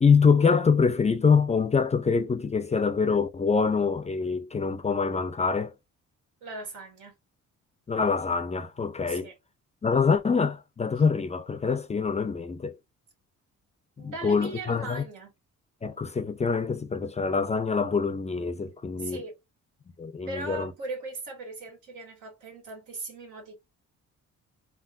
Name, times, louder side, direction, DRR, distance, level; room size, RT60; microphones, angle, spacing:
voice 1, 0.0-5.7 7.9-9.3 9.8-12.8 14.0-15.0 15.8-19.2 20.0-20.7, left 5 dB, 20° left, 0.4 m, -25 dB
voice 2, 6.4-7.1 9.1-9.3 14.0-15.3 19.0-19.4 20.3-23.6, right 2 dB, 85° right, 1.5 m, -39 dB
3.5 x 2.1 x 2.4 m
cardioid pair, 90°, 30 cm